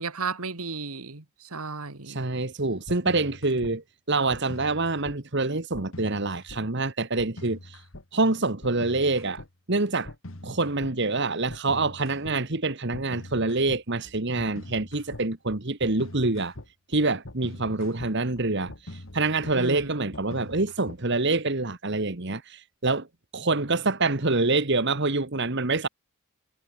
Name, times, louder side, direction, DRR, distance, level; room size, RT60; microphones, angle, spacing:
voice 1, 0.0-2.2 19.5-20.1, right 4 dB, 80° right, 2.4 m, -34 dB
voice 2, 2.0-7.8 8.1-9.4 9.7-10.1 10.4-16.5 16.9-23.1 23.3-25.9, right 3 dB, 50° right, 1.7 m, -26 dB
sound 1, 2.9-3.7 4.3-5.2 5.7-6.6 7.2-8.0 8.6-9.5 10.0-10.9 11.5-12.4 12.9-21.3, left 1 dB, 60° left, 2.0 m, -43 dB
head